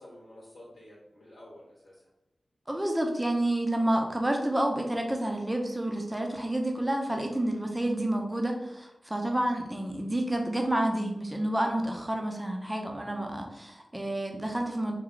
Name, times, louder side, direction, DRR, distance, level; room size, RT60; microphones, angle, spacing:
voice 1, 0.0-2.1 13.0-13.4, left 1 dB, 70° left, -6 dB, 1.2 m, -50 dB
voice 2, 2.7-15.0, right 1 dB, 20° right, 2 dB, 0.8 m, -29 dB
3.1 x 2.3 x 3.8 m, 0.89 s
cardioid pair, 40°, 0 cm